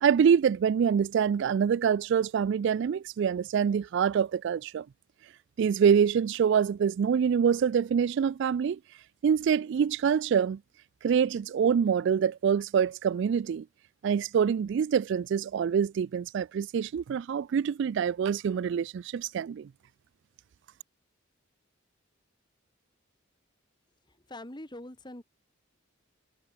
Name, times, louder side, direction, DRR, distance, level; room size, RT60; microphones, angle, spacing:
voice 1, 0.0-4.9 5.6-8.8 9.2-10.6 11.0-13.7 14.0-19.7, right 7 dB, 60° right, 0.3 m, -25 dB
voice 2, 24.1-25.2, left 1 dB, 20° left, 2.3 m, -44 dB
head